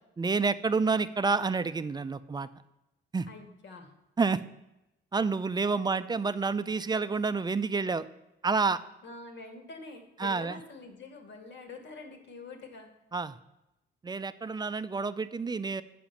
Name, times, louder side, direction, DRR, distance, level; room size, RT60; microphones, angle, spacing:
voice 1, 0.2-2.5 3.1-3.3 4.2-4.4 5.1-8.1 8.4-8.8 10.2-10.6 13.1-13.4 14.0-15.8, right 4 dB, 20° right, 13 dB, 0.5 m, -29 dB
voice 2, 3.3-3.9 5.7-6.0 9.0-12.9, left 3 dB, 65° left, 5 dB, 1.8 m, -46 dB
8.8 x 5.1 x 7.1 m, 0.90 s
cardioid pair, 90°, 20 cm